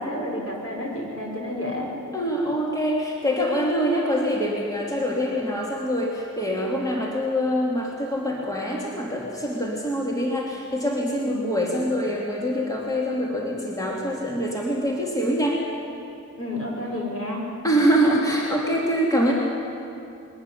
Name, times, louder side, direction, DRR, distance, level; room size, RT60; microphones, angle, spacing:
voice 1, 0.0-1.9 11.2-11.7 16.4-17.5, left 1 dB, 50° left, -2 dB, 5.6 m, -30 dB
voice 2, 2.1-15.6 17.6-19.3, equal, 10° left, -4 dB, 2.9 m, -24 dB
21.5 x 13.5 x 10.0 m, 2.6 s
wide cardioid pair, 70°, 30 cm